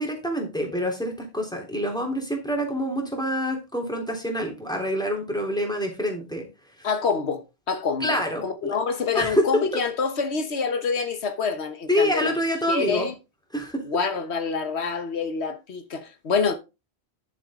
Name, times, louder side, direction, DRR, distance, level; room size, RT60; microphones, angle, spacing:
voice 1, 0.0-6.5 6.8-6.9 8.0-8.7 9.1-9.5 11.9-13.1 13.5-13.8, equal, 5° left, 3.3 m, -26 dB
voice 2, 6.8-12.3 12.7-13.1 13.8-16.5, left 5 dB, 85° left, 1.4 m, -27 dB
10.5 x 7.2 x 3.7 m
omnidirectional pair, 1.1 m